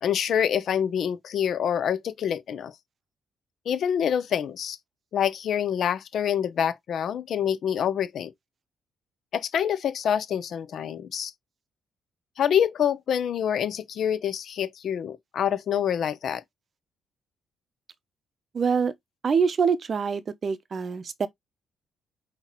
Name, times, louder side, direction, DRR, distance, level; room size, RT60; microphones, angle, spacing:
voice 1, 0.0-2.7 3.7-4.8 5.1-8.3 9.3-11.3 12.4-16.4, left 9 dB, 65° left, 0.6 m, -26 dB
voice 2, 18.5-18.9 19.2-21.3, right 6 dB, 45° right, 0.6 m, -25 dB
5.6 x 2.9 x 3.0 m
cardioid pair, 90°, 0 cm